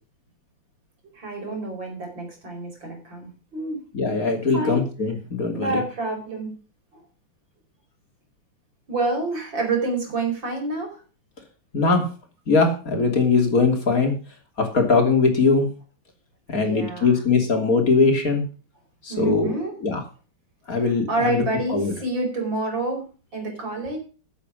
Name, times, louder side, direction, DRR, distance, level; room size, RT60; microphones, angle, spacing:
voice 1, 1.1-3.8 4.5-4.9 5.5-6.5 8.9-11.0 16.5-17.2 19.1-19.7 20.8-24.0, right 3 dB, 70° right, 1 dB, 5.6 m, -28 dB
voice 2, 3.9-5.7 11.7-12.1 12.5-14.1 14.6-15.7 16.5-18.4 19.0-19.5 19.8-20.0 20.7-21.4 21.7-21.9, left 4 dB, 45° left, 4 dB, 3.5 m, -20 dB
14.5 x 8.3 x 5.1 m, 0.37 s
omnidirectional pair, 2.1 m